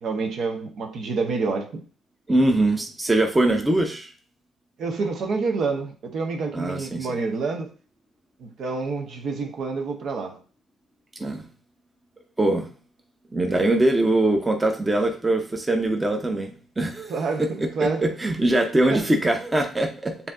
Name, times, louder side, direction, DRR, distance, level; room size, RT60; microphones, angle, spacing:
voice 1, 0.0-1.8 4.8-7.7 8.4-10.4 17.1-18.0 18.9-19.0, right 4 dB, 65° right, 0.8 m, -28 dB
voice 2, 2.3-4.1 6.5-7.1 11.2-11.5 12.4-12.7 13.3-17.1 17.4-17.5 17.8-20.3, right 1 dB, 15° right, 0.7 m, -22 dB
7.0 x 2.7 x 2.5 m
cardioid pair, 90°, 0 cm